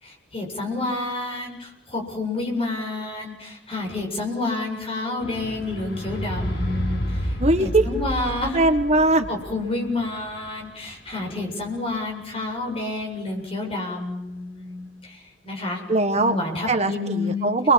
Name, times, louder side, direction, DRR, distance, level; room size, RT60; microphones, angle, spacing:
voice 1, 0.0-8.6 9.3-15.8 16.2-17.5, left 2 dB, 30° left, 2 dB, 7.6 m, -29 dB
sound 1, 5.2-11.7 12.5-12.6, equal, 65° left, 5.7 m, -30 dB
voice 2, 7.4-7.9 8.5-9.3 15.9-16.4 16.7-17.7, right 2 dB, 35° right, 7 dB, 1.6 m, -20 dB
30.0 x 23.0 x 7.6 m, 1.0 s
head